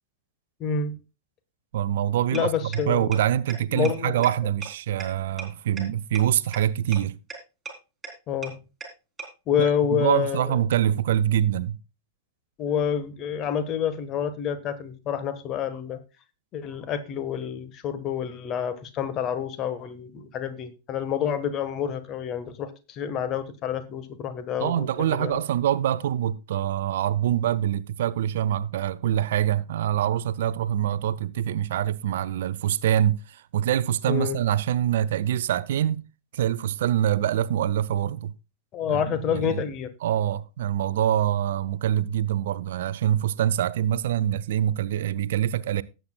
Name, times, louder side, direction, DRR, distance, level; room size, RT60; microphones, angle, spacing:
voice 1, 0.6-1.0 2.3-3.1 3.7-4.2 8.3-8.6 9.5-10.6 12.6-16.0 16.5-25.4 34.1-34.4 38.7-39.9, left 8 dB, 35° left, 1.4 m, -28 dB
voice 2, 1.7-7.2 9.6-11.8 24.6-36.0 36.3-38.3 38.9-39.6 40.0-45.8, right 11 dB, 60° right, 0.5 m, -25 dB
sound 1, 2.3-2.4 2.7-2.8 3.1-3.2 3.5-3.6 3.8-3.9 4.2-4.3 4.6-4.7 5.0-5.1 5.4-5.5 5.8-5.9 6.1-6.2 6.5-6.6 6.9-7.0 7.3-7.4 7.7-7.8 8.0-8.1 8.4-8.5 8.8-8.9 9.2-9.3, right 5 dB, 15° right, 4.1 m, -35 dB
18.0 x 7.9 x 2.3 m
figure-of-eight pair, 90°, 0 cm